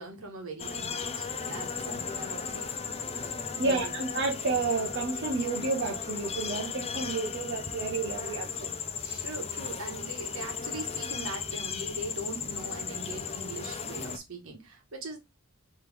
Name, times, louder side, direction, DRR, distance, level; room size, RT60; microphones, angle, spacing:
voice 1, 0.0-2.7 3.6-3.9 9.2-15.2, right 2 dB, 75° right, 1.4 m, -41 dB
sound 1, 0.6-14.2, left 6 dB, 30° left, 0.5 m, -36 dB
voice 2, 3.6-8.7 9.0-9.3, right 3 dB, 60° right, 0.8 m, -31 dB
3.5 x 3.1 x 3.4 m
head